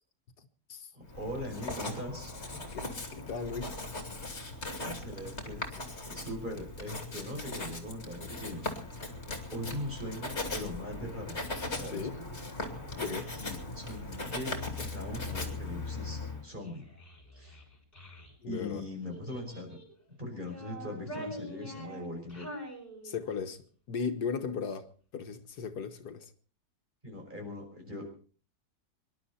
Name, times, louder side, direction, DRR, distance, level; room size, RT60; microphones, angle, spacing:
voice 1, 0.9-2.7 4.8-5.7 6.1-9.1 9.5-11.4 11.7-12.1 13.4-16.9 17.4-17.6 18.5-19.8 20.2-22.5 27.0-28.1, left 1 dB, 30° right, 5.8 m, -40 dB
Writing, 1.1-16.4, left 2 dB, 40° left, 3.1 m, -39 dB
voice 2, 2.7-3.8 11.8-12.2 12.9-13.3 18.4-18.8 23.0-23.6 23.9-26.3, left 5 dB, 75° left, 1.8 m, -37 dB
Child speech kid speaking, 16.6-18.3 19.1-19.9 20.4-23.5, equal, 25° left, 6.7 m, -45 dB
25.5 x 11.5 x 4.3 m
omnidirectional pair, 1.7 m